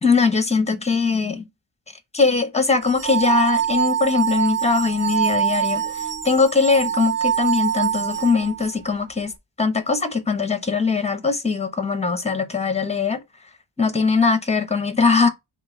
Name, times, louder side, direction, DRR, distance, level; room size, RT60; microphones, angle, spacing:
voice 1, 0.0-1.5 2.1-5.8 6.2-9.3 9.6-13.2 13.8-15.3, left 4 dB, 15° left, 0.8 m, -21 dB
sound 1, 2.9-8.7, right 9 dB, 25° right, 0.4 m, -24 dB
5.2 x 2.4 x 4.3 m
wide cardioid pair, 105°, 48 cm